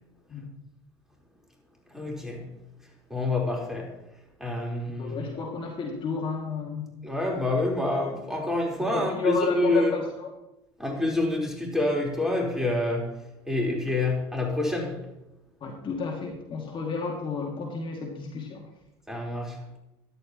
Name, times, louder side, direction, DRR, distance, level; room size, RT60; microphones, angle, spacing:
voice 1, 1.9-2.5 3.1-4.0 4.4-5.3 7.0-9.9 10.8-13.2 13.5-15.1 19.1-19.7, left 2 dB, 5° right, -1 dB, 4.1 m, -27 dB
voice 2, 5.0-6.9 8.9-10.3 15.6-18.6, left 5 dB, 40° left, 0 dB, 2.4 m, -32 dB
14.0 x 11.0 x 3.0 m, 0.91 s
hypercardioid pair, 75°, 13 cm